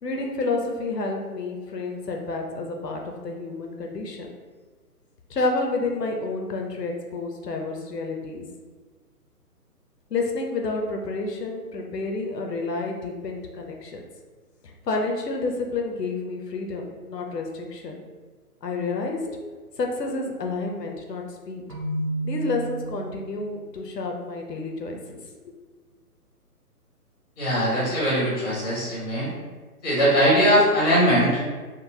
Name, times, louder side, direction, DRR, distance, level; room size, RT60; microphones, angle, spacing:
voice 1, 0.0-4.3 5.3-8.5 10.1-14.0 14.6-18.0 18.6-19.2 19.8-21.6 22.2-25.2, left 3 dB, 90° left, 2 dB, 0.7 m, -29 dB
Keyboard (musical), 21.7-23.6, right 1 dB, 80° right, 1.1 m, -31 dB
voice 2, 27.4-29.3 29.8-31.5, equal, 15° left, -8 dB, 0.5 m, -21 dB
3.8 x 2.0 x 2.7 m, 1.4 s
figure-of-eight pair, 140°, 47 cm